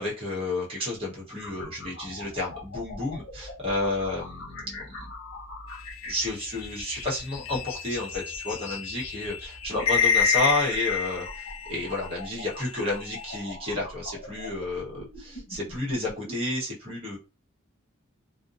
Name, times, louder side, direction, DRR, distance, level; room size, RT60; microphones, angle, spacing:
voice 1, 0.0-5.1 6.1-17.2, left 2 dB, 25° right, -5 dB, 1.0 m, -31 dB
sound 1, 1.4-16.4, left 2 dB, 55° left, 0.8 m, -42 dB
sound 2, 5.8-12.1 12.5-13.4, left 7 dB, 75° left, 0.4 m, -29 dB
2.5 x 2.1 x 2.5 m, 0.30 s
head